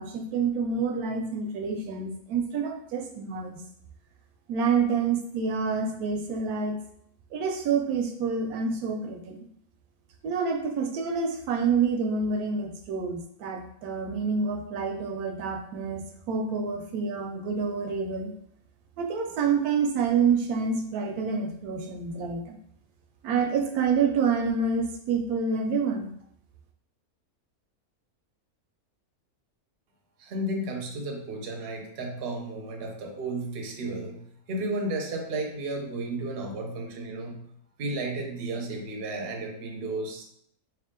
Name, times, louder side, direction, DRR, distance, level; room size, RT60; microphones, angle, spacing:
voice 1, 0.0-3.6 4.5-6.8 7.3-9.4 10.2-18.3 19.0-22.6 23.2-26.1, right 5 dB, 80° right, 3 dB, 1.1 m, -27 dB
voice 2, 30.2-37.4 37.8-40.2, right 2 dB, 50° right, 1 dB, 0.8 m, -33 dB
3.4 x 3.0 x 3.6 m, 0.69 s
omnidirectional pair, 1.6 m